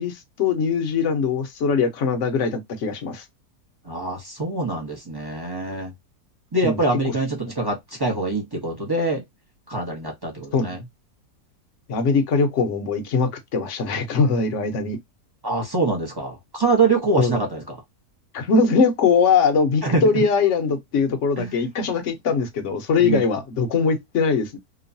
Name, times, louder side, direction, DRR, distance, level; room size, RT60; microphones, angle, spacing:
voice 1, 0.0-3.2 6.6-6.8 10.5-10.7 11.9-15.0 17.2-17.3 18.3-24.6, left 5 dB, 60° left, 0.9 m, -21 dB
voice 2, 3.8-5.9 6.5-9.2 9.7-10.8 15.4-17.8 19.8-20.3 21.4-21.6 23.0-23.2, right 3 dB, 25° right, 0.5 m, -24 dB
3.0 x 2.2 x 2.5 m
omnidirectional pair, 1.7 m